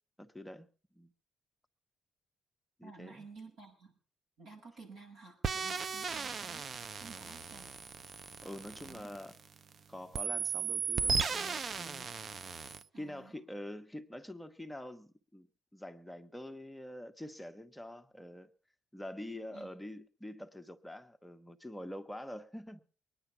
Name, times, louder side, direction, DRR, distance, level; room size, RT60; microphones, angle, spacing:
voice 1, 0.2-0.7 0.9-1.1 2.8-3.3 8.4-9.4 9.9-12.1 13.0-15.5 15.7-18.5 18.9-22.8, left 1 dB, 5° left, 1.0 m, -46 dB
voice 2, 2.8-4.0 4.4-7.8 8.8-9.2 12.9-13.3 19.5-19.7, right 4 dB, 85° right, 6.8 m, -53 dB
sound 1, 5.4-9.7 10.1-12.8, right 5 dB, 50° right, 0.7 m, -36 dB
21.0 x 10.0 x 6.0 m
cardioid pair, 90°, 0 cm